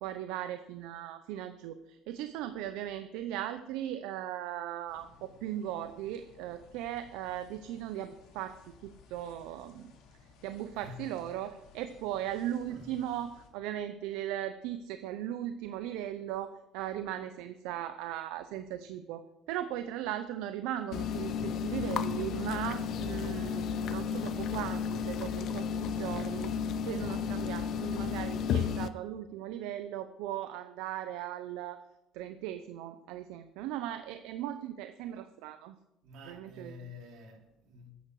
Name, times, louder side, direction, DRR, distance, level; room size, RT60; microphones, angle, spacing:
voice 1, 0.0-9.9 10.2-19.2 19.5-31.8 32.1-35.8 36.3-36.7, right 11 dB, 85° right, 0.6 m, -38 dB
sound 1, 4.9-13.5, left 5 dB, 80° left, 2.7 m, -59 dB
voice 2, 10.7-11.2 12.7-13.1 36.0-37.9, left 3 dB, 70° right, 2.8 m, -49 dB
sound 2, 20.9-28.9, left 7 dB, 55° left, 0.6 m, -33 dB
13.5 x 9.5 x 4.8 m
cardioid pair, 135°, 0 cm